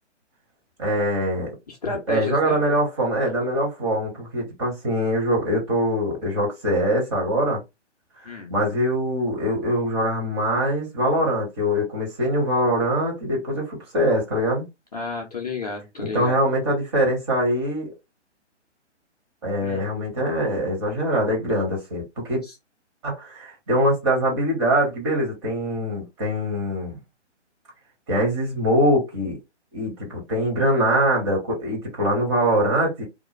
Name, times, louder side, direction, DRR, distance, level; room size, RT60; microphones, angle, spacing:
voice 1, 0.8-1.5 2.1-7.6 8.2-14.7 16.0-17.9 19.4-22.4 23.0-27.0 28.1-29.4 29.7-33.1, equal, 25° right, 1.0 m, -23 dB
voice 2, 1.7-2.6 8.2-8.5 14.9-16.4 19.6-19.8 22.4-22.5, left 3 dB, 35° left, 0.5 m, -32 dB
2.4 x 2.1 x 3.0 m
figure-of-eight pair, 135°, 36 cm